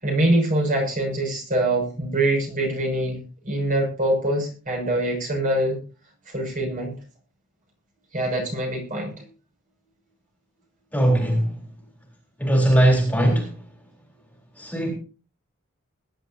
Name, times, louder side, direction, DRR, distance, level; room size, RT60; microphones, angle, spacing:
voice 1, 0.0-5.8 6.3-6.9 8.1-9.1, right 1 dB, 40° right, 1 dB, 6.6 m, -24 dB
voice 2, 10.9-11.5 12.4-13.5 14.6-14.9, right 1 dB, 5° left, 0 dB, 3.6 m, -19 dB
21.0 x 11.0 x 2.8 m, 0.36 s
head